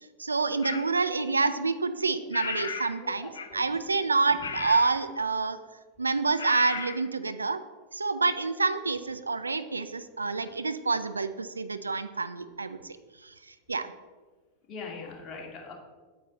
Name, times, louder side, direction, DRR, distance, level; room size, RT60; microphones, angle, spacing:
voice 1, 0.2-5.6 6.0-7.6 7.9-13.0 13.2-13.9, right 4 dB, 80° right, 11 dB, 0.4 m, -28 dB
sound 1, 0.6-0.9 2.3-3.0 3.3-3.7 4.4-5.0 6.4-7.0, left 5 dB, 70° left, 1.0 m, -34 dB
voice 2, 3.0-3.6 14.7-15.7, left 4 dB, 30° left, -1 dB, 2.1 m, -41 dB
8.7 x 8.3 x 3.9 m, 1.4 s
figure-of-eight pair, 90°, 0 cm